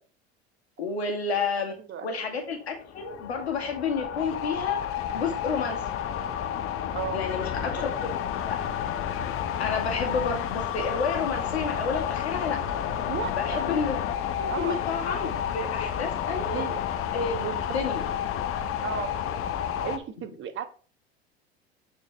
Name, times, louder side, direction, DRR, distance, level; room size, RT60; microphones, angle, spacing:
voice 1, 0.8-1.7 2.0-4.8 5.1-5.8 7.1-8.1 8.4-8.6 9.6-12.6 13.4-14.0 14.4-16.7 17.1-17.4 17.7-18.0, left 5 dB, 85° left, 4 dB, 2.0 m, -30 dB
sound 1, 2.6-20.0, left 9 dB, 45° left, 1.0 m, -31 dB
voice 2, 6.9-7.2 7.6-7.8 13.1-13.7 14.5-14.8 16.5-16.8 17.4-17.8 18.8-19.2 19.8-20.7, right 8 dB, 40° right, 9 dB, 1.3 m, -35 dB
8.8 x 4.7 x 3.6 m, 0.41 s
hypercardioid pair, 80°, 31 cm